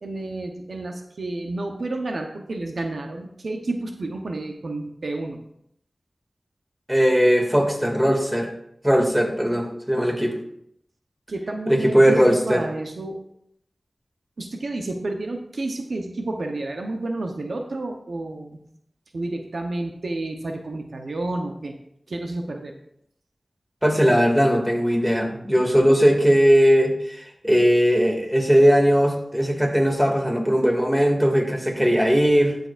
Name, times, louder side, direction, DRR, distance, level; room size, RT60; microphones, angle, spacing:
voice 1, 0.0-5.4 11.3-13.2 14.4-18.6 19.1-21.7 22.1-22.7, right 2 dB, 80° right, 4 dB, 0.9 m, -30 dB
voice 2, 6.9-8.5 8.8-10.4 11.7-12.6 23.8-32.6, equal, 10° right, 1 dB, 2.3 m, -19 dB
12.5 x 6.8 x 2.5 m, 0.72 s
cardioid pair, 45°, 0 cm